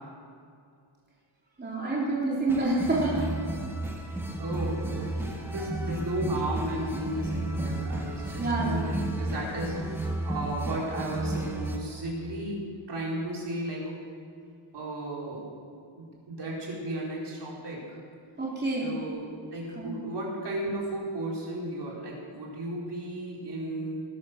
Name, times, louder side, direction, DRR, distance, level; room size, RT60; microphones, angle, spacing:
voice 1, 1.6-3.3 8.4-9.0 18.4-18.9 19.8-19.9, right 2 dB, 20° right, -6 dB, 3.0 m, -28 dB
sound 1, 2.5-11.8, right 1 dB, 5° right, 1.6 m, -32 dB
voice 2, 4.1-13.8 14.7-15.4 16.0-18.0 18.8-24.0, right 1 dB, 55° right, -4 dB, 4.4 m, -34 dB
19.0 x 12.0 x 6.4 m, 2.3 s
wide cardioid pair, 170°, 49 cm